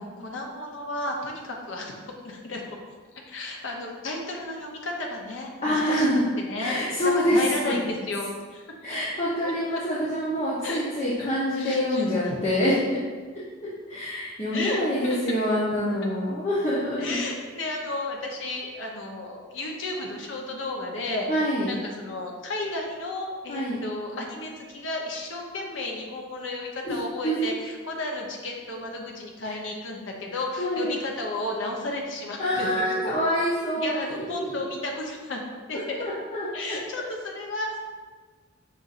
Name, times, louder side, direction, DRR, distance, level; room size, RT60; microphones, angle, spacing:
voice 1, 0.0-2.6 3.3-6.1 6.4-6.8 7.0-8.2 8.5-8.6 8.9-9.0 9.4-9.8 10.6-10.8 11.2-11.3 11.5-12.4 14.5-15.2 17.0-21.3 21.7-33.1 33.8-35.4 35.7-36.0 36.5-37.8, left 2 dB, 70° left, 0 dB, 0.8 m, -33 dB
voice 2, 5.6-6.2 6.6-7.7 8.8-13.0 13.9-17.2 21.3-21.7 23.5-23.8 26.8-27.0 27.2-27.5 29.4-29.6 30.6-31.0 32.4-34.6 36.0-36.8, equal, 35° left, -9 dB, 0.8 m, -26 dB
5.2 x 4.1 x 2.5 m, 1.4 s
head